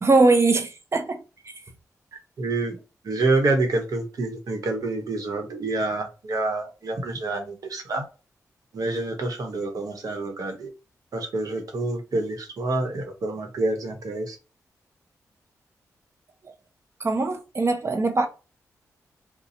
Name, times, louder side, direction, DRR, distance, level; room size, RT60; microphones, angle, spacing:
voice 1, 0.0-1.2 17.0-18.3, right 3 dB, 45° right, 0.8 m, -21 dB
voice 2, 2.1-2.8 3.0-8.0 8.7-10.7 11.1-14.4, right 2 dB, 70° right, 1.1 m, -27 dB
2.7 x 2.3 x 4.0 m
cardioid pair, 50°, 6 cm